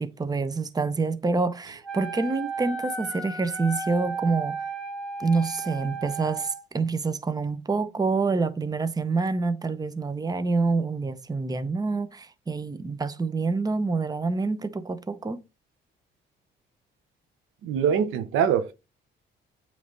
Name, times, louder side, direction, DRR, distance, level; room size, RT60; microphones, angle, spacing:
voice 1, 0.0-4.5 5.2-15.4, right 4 dB, 20° right, 0.7 m, -27 dB
Wind instrument woodwind instrument, 1.8-6.6, right 4 dB, 5° left, 1.4 m, -34 dB
voice 2, 17.6-18.7, right 7 dB, 90° right, 0.9 m, -23 dB
8.3 x 3.3 x 3.9 m
cardioid pair, 90°, 20 cm